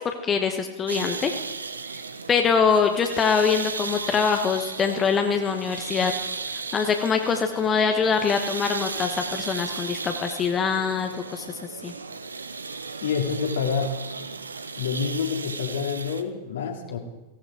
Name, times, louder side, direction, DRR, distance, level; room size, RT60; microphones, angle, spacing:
voice 1, 0.0-1.3 2.3-6.1 6.7-11.9, left 6 dB, 25° left, 5 dB, 1.2 m, -24 dB
sound 1, 0.9-16.2, right 4 dB, 75° right, 0.9 m, -35 dB
voice 2, 13.0-14.0 14.8-17.0, left 6 dB, 60° left, 3 dB, 2.4 m, -27 dB
17.5 x 16.0 x 4.9 m, 1.1 s
figure-of-eight pair, 90°, 0 cm